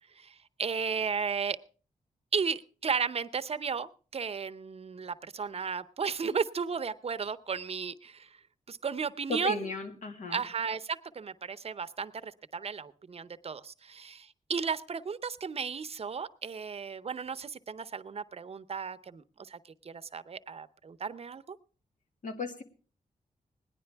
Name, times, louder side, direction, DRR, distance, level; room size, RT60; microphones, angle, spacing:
voice 1, 0.2-1.6 2.3-8.4 8.7-9.7 10.3-21.6, right 6 dB, 45° right, 13 dB, 0.7 m, -34 dB
voice 2, 9.3-10.4 22.2-22.6, left 3 dB, 70° left, 5 dB, 1.9 m, -35 dB
18.5 x 10.5 x 3.4 m, 0.39 s
cardioid pair, 80°, 14 cm